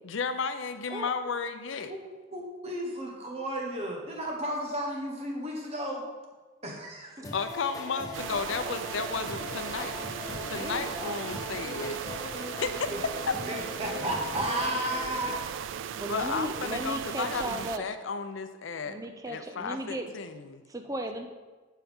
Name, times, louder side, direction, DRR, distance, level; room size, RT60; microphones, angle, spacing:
voice 1, 0.0-1.9 7.3-10.0 10.4-12.0 12.4-13.1 16.1-19.0 19.3-20.6, left 5 dB, 80° left, 10 dB, 0.5 m, -33 dB
voice 2, 2.3-6.0 6.6-7.3 12.9-13.0 13.4-15.4, right 1 dB, 30° right, 0 dB, 1.3 m, -33 dB
sound 1, 7.2-15.4, left 3 dB, 20° left, 0.7 m, -40 dB
sound 2, 8.1-17.8, right 8 dB, 75° right, 0.3 m, -37 dB
voice 3, 10.6-11.4 16.0-17.9 18.9-20.1 20.7-21.3, right 1 dB, 15° right, 6 dB, 0.5 m, -36 dB
11.0 x 4.5 x 3.6 m, 1.3 s
head